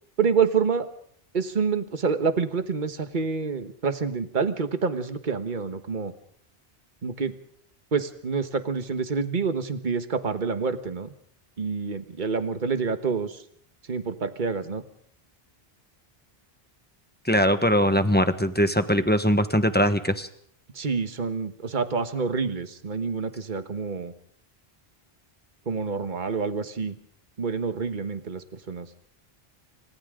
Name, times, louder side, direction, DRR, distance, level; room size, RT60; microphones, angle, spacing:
voice 1, 0.2-0.9 1.3-6.1 7.0-7.3 7.9-11.1 11.6-13.4 13.9-14.8 20.7-24.1 25.7-26.9 27.4-28.9, right 5 dB, 50° right, 9 dB, 1.5 m, -27 dB
voice 2, 17.2-20.3, equal, 10° left, 9 dB, 1.2 m, -21 dB
28.0 x 25.5 x 3.8 m, 0.63 s
omnidirectional pair, 1.1 m